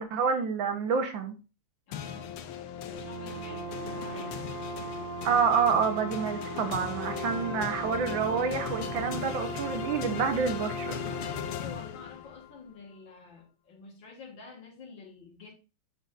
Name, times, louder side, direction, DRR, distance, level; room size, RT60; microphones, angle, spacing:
voice 1, 0.0-1.3 5.2-11.0, right 6 dB, 70° right, 1.6 m, -28 dB
sound 1, 1.9-12.5, left 9 dB, 85° left, 1.6 m, -37 dB
voice 2, 1.9-2.3 2.8-4.4 11.4-15.5, left 4 dB, 60° left, 2.5 m, -48 dB
Brass instrument, 2.9-11.6, right 5 dB, 30° left, 3.2 m, -39 dB
7.9 x 6.8 x 2.5 m
omnidirectional pair, 2.4 m